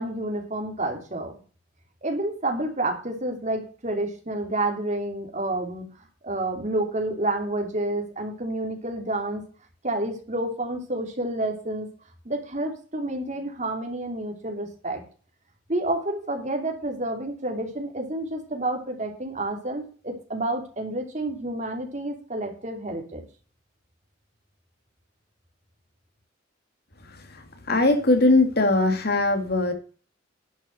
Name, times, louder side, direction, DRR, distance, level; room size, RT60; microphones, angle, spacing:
voice 1, 0.0-1.4 2.0-5.8 6.2-9.4 9.8-11.9 12.2-15.0 15.7-23.2, right 1 dB, 40° right, 4 dB, 3.0 m, -29 dB
voice 2, 27.1-29.7, left 2 dB, 55° left, 6 dB, 2.3 m, -21 dB
11.0 x 6.3 x 6.5 m, 0.38 s
head